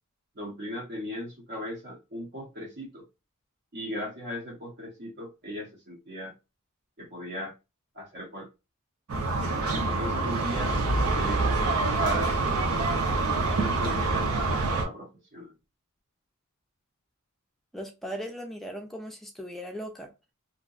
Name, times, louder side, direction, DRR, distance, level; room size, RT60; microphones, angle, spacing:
voice 1, 0.4-3.0 3.7-6.3 7.0-7.5 8.0-8.5 9.7-10.7 11.1-12.4 13.3-15.5, equal, 50° right, 0.8 m, -37 dB
sound 1, 9.1-14.9, right 3 dB, 85° right, 0.6 m, -26 dB
voice 2, 17.7-20.1, equal, ahead, 0.5 m, -38 dB
2.7 x 2.1 x 2.3 m
head